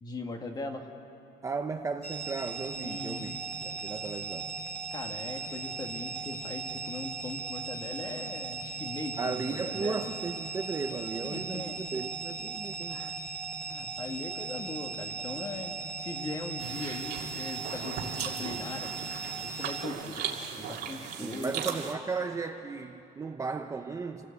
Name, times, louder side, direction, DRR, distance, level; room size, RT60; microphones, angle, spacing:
voice 1, 0.0-0.9 2.8-3.3 4.9-10.0 11.2-11.8 12.9-13.2 13.6-19.1 19.4-21.8, left 3 dB, 25° left, 4 dB, 1.6 m, -40 dB
voice 2, 1.4-4.5 9.2-13.0 21.2-24.3, right 4 dB, 20° right, 5 dB, 0.6 m, -35 dB
sound 1, 2.0-19.8, right 4 dB, 5° left, 3.1 m, -38 dB
sound 2, 16.6-21.9, right 7 dB, 80° right, 2.4 m, -38 dB
27.5 x 17.5 x 8.3 m, 2.9 s
cardioid pair, 180°, 17 cm